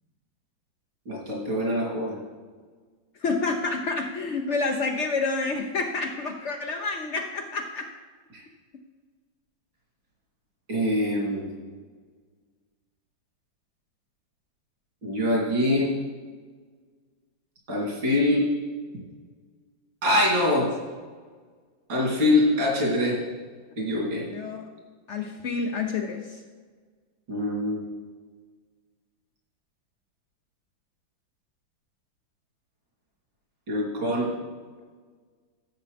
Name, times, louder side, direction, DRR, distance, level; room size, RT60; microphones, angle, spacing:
voice 1, 1.1-2.2 8.3-8.4 10.7-11.5 15.0-15.9 17.7-18.5 20.0-20.7 21.9-23.2 23.8-24.3 27.3-27.8 33.7-34.4, left 1 dB, 70° right, -5 dB, 3.9 m, -24 dB
voice 2, 3.2-7.9 24.3-24.6 25.1-26.4, left 3 dB, 80° left, 2 dB, 0.6 m, -28 dB
15.0 x 6.9 x 3.4 m, 1.5 s
omnidirectional pair, 2.1 m